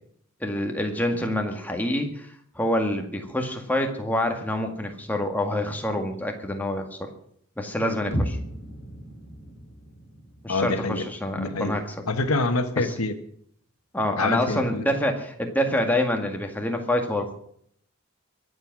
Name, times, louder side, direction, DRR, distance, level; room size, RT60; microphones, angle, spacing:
voice 1, 0.4-7.1 7.6-8.4 10.4-12.0 12.8-12.9 13.9-17.3, left 1 dB, 10° left, 3 dB, 1.9 m, -27 dB
sound 1, 8.1-12.1, equal, 50° left, 4.2 m, -34 dB
voice 2, 10.5-11.0 11.4-11.8 12.1-13.1 14.2-14.8, left 2 dB, 80° left, 8 dB, 1.3 m, -26 dB
23.0 x 8.0 x 6.1 m, 0.67 s
head